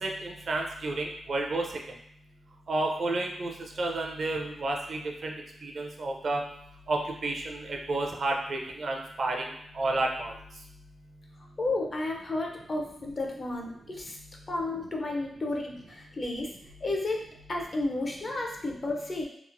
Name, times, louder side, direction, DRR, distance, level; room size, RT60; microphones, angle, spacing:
voice 1, 0.0-1.6 2.7-3.5 3.8-5.3 5.6-6.4 6.9-9.5 9.7-10.3, right 2 dB, 55° right, 1 dB, 0.4 m, -31 dB
voice 2, 11.6-14.2 14.5-16.5 16.8-17.2 17.5-19.2, left 2 dB, 35° left, 0 dB, 0.5 m, -32 dB
2.9 x 2.4 x 2.5 m, 0.72 s
wide cardioid pair, 125°, 0 cm